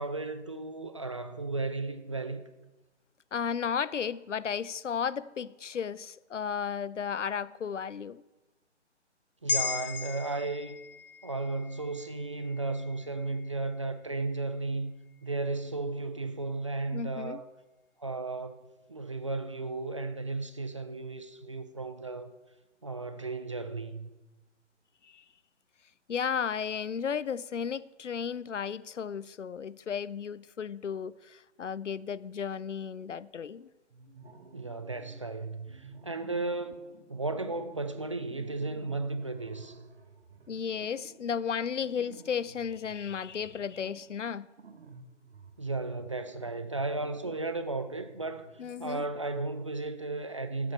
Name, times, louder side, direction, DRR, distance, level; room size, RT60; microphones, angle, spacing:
voice 1, 0.0-2.4 9.4-10.8 11.2-14.9 15.2-17.5 18.0-22.3 22.8-24.1 34.5-39.8 45.6-48.5 48.8-50.7, right 3 dB, 25° right, 0.4 m, -34 dB
voice 2, 3.3-8.2 16.9-17.4 25.0-25.2 26.1-33.7 40.5-44.5 48.6-49.0, left 7 dB, 80° left, 0.5 m, -34 dB
sound 1, 9.5-14.0 14.4-14.5, left 4 dB, 50° left, 0.8 m, -37 dB
sound 2, 33.9-35.3 35.6-49.5, right 4 dB, 60° right, 1.3 m, -54 dB
12.5 x 8.4 x 4.4 m
figure-of-eight pair, 135°, 36 cm